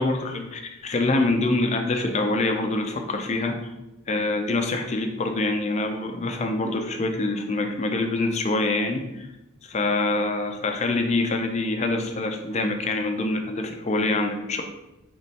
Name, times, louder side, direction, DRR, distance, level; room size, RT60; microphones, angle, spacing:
voice 1, 0.0-3.7 4.1-9.3 9.6-14.6, left 2 dB, 30° left, 4 dB, 0.4 m, -25 dB
4.1 x 3.1 x 3.3 m, 0.94 s
head